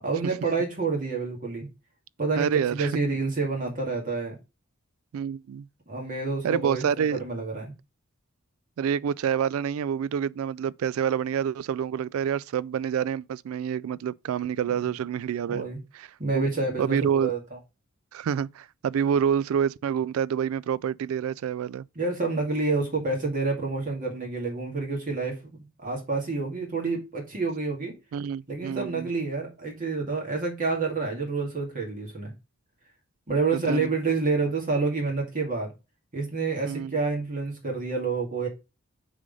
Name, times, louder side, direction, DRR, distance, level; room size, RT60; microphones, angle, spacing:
voice 1, 0.0-1.7 2.2-4.4 5.9-7.7 15.5-15.8 16.2-17.4 22.0-25.4 25.8-27.9 28.5-32.3 33.3-35.7 36.1-38.5, right 3 dB, 40° right, 2.3 m, -28 dB
voice 2, 2.4-2.9 5.1-5.7 6.4-7.2 8.8-15.7 15.9-16.1 16.3-16.4 16.8-17.3 18.1-21.8 28.1-29.1 33.5-33.9 36.6-37.0, right 8 dB, 75° right, 0.3 m, -27 dB
6.3 x 3.9 x 5.3 m
head